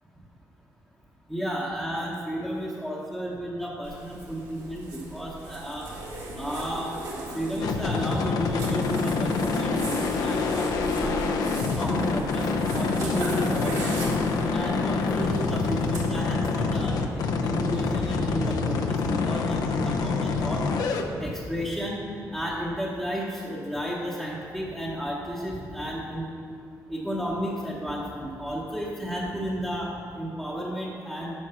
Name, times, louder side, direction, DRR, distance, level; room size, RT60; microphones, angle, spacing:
voice 1, 1.3-5.9 6.4-6.9 7.3-11.3 11.7-20.6 21.2-22.0 22.3-26.3 26.9-31.4, equal, ahead, -7 dB, 0.9 m, -33 dB
Zipper (clothing), 3.8-16.0, right 2 dB, 70° right, 2.1 m, -38 dB
sound 1, 7.6-21.0, left 4 dB, 70° left, 0.7 m, -26 dB
8.8 x 6.1 x 5.7 m, 2.5 s
cardioid pair, 145°, 7 cm